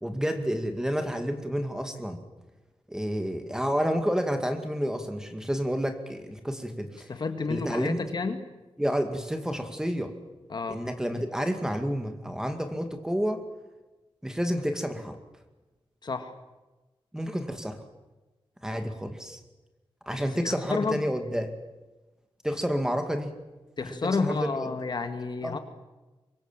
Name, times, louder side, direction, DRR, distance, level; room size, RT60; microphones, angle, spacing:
voice 1, 0.0-2.2 2.9-7.1 7.5-8.0 8.8-10.2 10.7-13.4 14.2-15.2 17.1-17.8 18.6-19.4 20.1-21.5 22.4-23.4 23.8-24.7 25.4-25.6, equal, 5° right, 6 dB, 2.1 m, -30 dB
voice 2, 7.1-8.4 10.5-10.8 16.0-16.3 20.4-21.0 23.8-25.6, left 4 dB, 50° left, 7 dB, 1.9 m, -30 dB
25.0 x 22.0 x 7.4 m, 1.1 s
wide cardioid pair, 150°, 10 cm